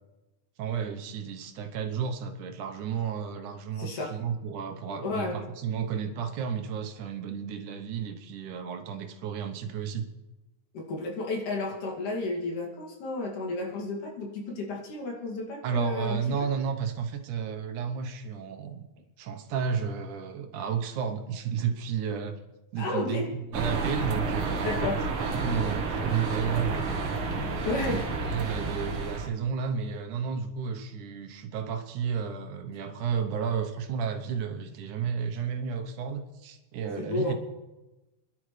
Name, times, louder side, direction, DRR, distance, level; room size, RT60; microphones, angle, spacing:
voice 1, 0.6-10.1 15.6-18.8 19.2-22.4 22.7-23.2 23.5-24.7 25.2-27.1 27.9-28.0 28.3-37.3, right 7 dB, 85° right, 5 dB, 2.5 m, -32 dB
voice 2, 3.8-4.2 5.0-5.4 10.7-16.4 22.8-23.3 24.6-25.1 27.6-28.1 37.0-37.3, left 2 dB, 85° left, -2 dB, 3.9 m, -32 dB
sound 1, 23.5-29.3, right 3 dB, 55° right, 2.0 m, -30 dB
27.5 x 11.5 x 3.2 m, 1.1 s
omnidirectional pair, 3.4 m